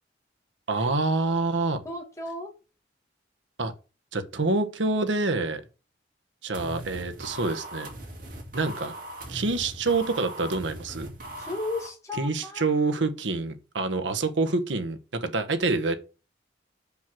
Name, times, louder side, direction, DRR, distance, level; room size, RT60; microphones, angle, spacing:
voice 1, 0.7-1.8 3.6-3.7 4.1-5.6 6.4-7.9 8.5-8.9 9.3-11.1 12.1-15.9, right 3 dB, 80° right, 1.1 m, -27 dB
voice 2, 1.8-2.5 11.4-12.8, left 2 dB, 15° left, 2.2 m, -35 dB
sound 1, 6.5-11.9, right 1 dB, 45° right, 2.7 m, -40 dB
6.0 x 5.5 x 6.2 m
head